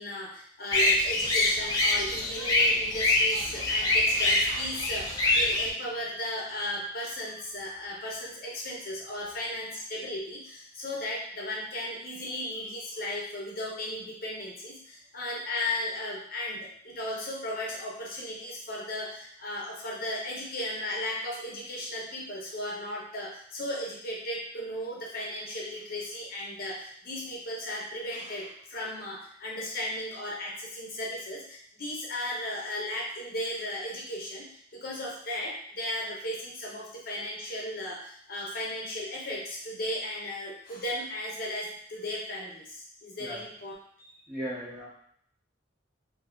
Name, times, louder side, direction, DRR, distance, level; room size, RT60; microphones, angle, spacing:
voice 1, 0.0-44.2, left 1 dB, 50° left, -3 dB, 0.7 m, -36 dB
sound 1, 0.7-5.7, left 2 dB, 20° left, 0.4 m, -25 dB
voice 2, 44.3-44.9, equal, 10° right, -8 dB, 0.9 m, -36 dB
2.6 x 2.3 x 3.6 m, 0.65 s
head